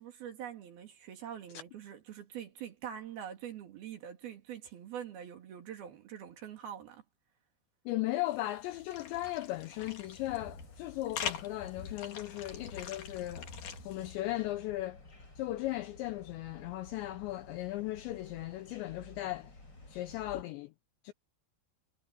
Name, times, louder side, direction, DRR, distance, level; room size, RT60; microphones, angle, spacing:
voice 1, 0.0-7.0, right 9 dB, 55° right, 3.5 m, -44 dB
voice 2, 7.9-13.5 13.9-15.0 15.4-19.5 19.9-20.7 21.0-21.1, left 16 dB, 85° left, 2.6 m, -37 dB
sound 1, 8.3-14.2, left 7 dB, 50° left, 3.4 m, -44 dB
sound 2, 10.2-20.4, left 2 dB, 20° left, 5.9 m, -54 dB
omnidirectional pair, 5.9 m